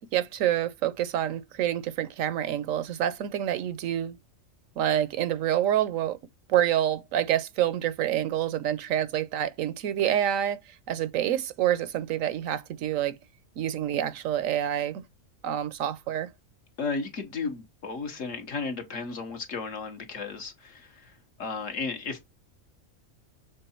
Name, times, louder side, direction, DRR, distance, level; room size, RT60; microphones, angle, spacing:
voice 1, 0.0-4.2 4.8-6.2 6.5-10.6 10.9-13.2 13.6-15.0 15.4-16.3, right 11 dB, 80° right, 1.0 m, -27 dB
voice 2, 16.8-22.3, left 4 dB, 70° left, 1.7 m, -34 dB
6.8 x 3.7 x 4.3 m
omnidirectional pair, 1.4 m